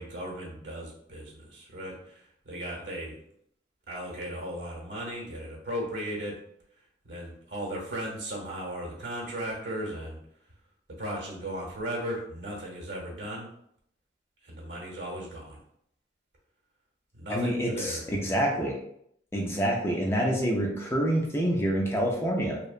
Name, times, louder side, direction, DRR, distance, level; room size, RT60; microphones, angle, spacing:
voice 1, 0.0-3.2 3.9-6.4 7.1-10.2 10.9-13.5 14.4-15.6 17.1-18.0, equal, 90° right, -2 dB, 0.9 m, -36 dB
voice 2, 17.3-18.8 19.3-22.6, equal, 15° left, -1 dB, 0.4 m, -27 dB
2.8 x 2.1 x 2.3 m, 0.72 s
head